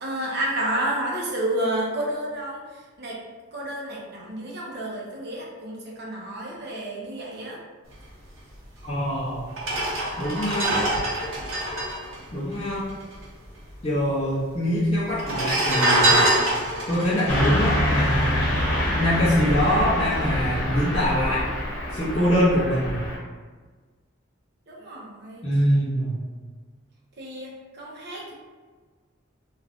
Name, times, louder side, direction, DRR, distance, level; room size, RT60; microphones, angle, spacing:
voice 1, 0.0-2.6 3.0-3.2 3.5-7.6 24.7-25.4 27.2-28.3, right 1 dB, 50° right, -3 dB, 0.6 m, -30 dB
voice 2, 8.8-9.5 10.2-10.7 12.3-12.9 13.8-16.2 16.9-18.5 18.9-21.4 21.9-23.0 25.4-26.2, equal, 30° left, -10 dB, 0.5 m, -24 dB
sound 1, 8.8-8.9 9.5-13.2 13.4-13.5 13.7-14.4 15.1-18.6 19.0-19.2, right 1 dB, 80° right, 0.8 m, -24 dB
Car passing by / Truck, 17.3-23.2, left 1 dB, 70° left, 0.9 m, -26 dB
2.4 x 2.4 x 3.4 m, 1.4 s
head